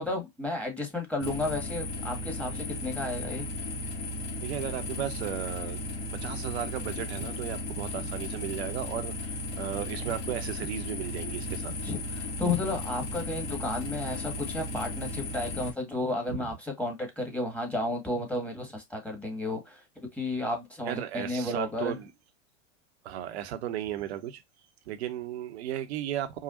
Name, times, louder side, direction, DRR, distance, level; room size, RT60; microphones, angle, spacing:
voice 1, 0.0-3.5 11.7-22.0, left 2 dB, 5° left, 1.7 m, -33 dB
sound 1, 1.2-15.7, left 2 dB, 55° left, 2.3 m, -35 dB
voice 2, 4.4-5.8 6.2-11.8 16.3-16.5 20.9-22.1 23.0-24.4 24.9-26.4, right 11 dB, 70° right, 1.0 m, -35 dB
5.0 x 2.4 x 2.5 m
hypercardioid pair, 90°, 34 cm